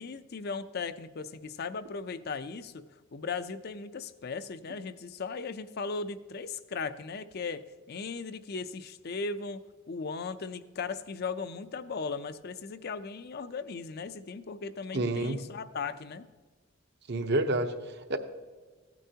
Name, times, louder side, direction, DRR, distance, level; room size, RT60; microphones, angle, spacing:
voice 1, 0.0-2.8 3.1-7.6 7.9-9.6 9.9-16.3, left 4 dB, 50° left, 12 dB, 0.5 m, -37 dB
voice 2, 14.9-15.4 17.1-18.2, right 2 dB, 55° right, 8 dB, 0.8 m, -29 dB
16.0 x 9.1 x 2.8 m, 1.4 s
head